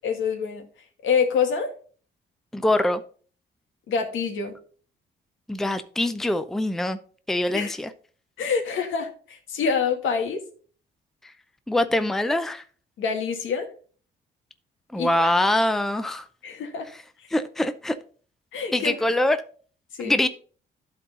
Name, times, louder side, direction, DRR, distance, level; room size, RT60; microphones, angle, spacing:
voice 1, 0.0-0.6 1.0-1.7 3.9-4.5 7.5-7.7 8.4-10.4 13.0-13.7 15.0-15.3 16.4-16.9 18.5-18.9 20.0-20.1, left 6 dB, 80° left, 4 dB, 1.6 m, -26 dB
voice 2, 2.5-3.0 5.5-7.0 7.3-7.9 11.7-12.6 14.9-16.2 17.3-18.0 18.7-19.4 20.0-20.3, left 1 dB, ahead, 11 dB, 0.5 m, -23 dB
12.0 x 4.0 x 3.8 m, 0.43 s
cardioid pair, 90°, 20 cm